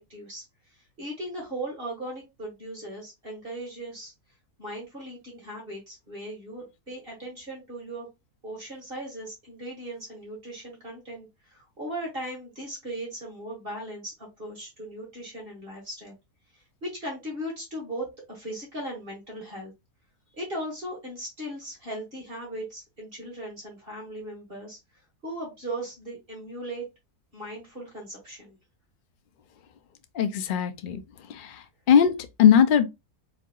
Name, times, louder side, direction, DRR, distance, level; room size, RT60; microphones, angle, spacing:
voice 1, 0.0-4.1 4.6-8.1 8.4-16.1 16.5-19.7 20.3-24.8 25.2-26.8 27.3-28.6, right 1 dB, 35° right, 1.9 m, -38 dB
voice 2, 30.1-31.0 31.3-32.9, left 8 dB, 60° left, 0.5 m, -20 dB
4.5 x 3.7 x 2.4 m
omnidirectional pair, 1.6 m